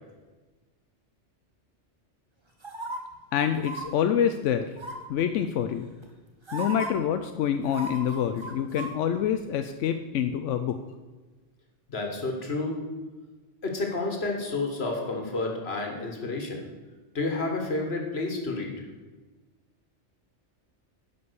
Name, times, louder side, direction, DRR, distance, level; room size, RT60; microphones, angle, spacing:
sound 1, 2.6-3.0 3.6-3.8 4.8-5.2 6.0-6.1 6.5-6.9 7.6-8.9 9.2-9.3, right 1 dB, 25° right, 1.2 m, -35 dB
voice 1, 3.3-4.7 5.1-5.9 6.5-10.8, left 9 dB, 90° left, 8 dB, 0.9 m, -26 dB
voice 2, 11.9-12.8 13.6-16.7 17.1-18.7, left 3 dB, 60° left, 2 dB, 1.8 m, -30 dB
11.0 x 5.3 x 6.8 m, 1.3 s
omnidirectional pair, 1.2 m